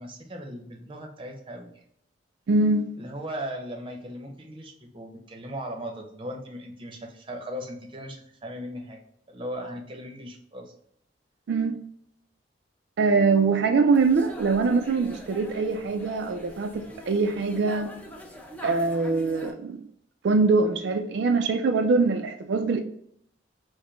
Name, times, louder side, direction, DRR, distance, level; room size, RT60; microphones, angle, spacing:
voice 1, 0.0-1.7 3.0-9.0 9.3-10.7, equal, 30° right, 0.7 m, -38 dB
voice 2, 2.5-2.9 11.5-11.8 13.0-17.9 18.6-19.8 20.2-22.8, right 4 dB, 75° right, 0.4 m, -23 dB
sound 1, 13.9-19.5, equal, 10° left, 0.6 m, -44 dB
4.8 x 2.1 x 3.1 m
head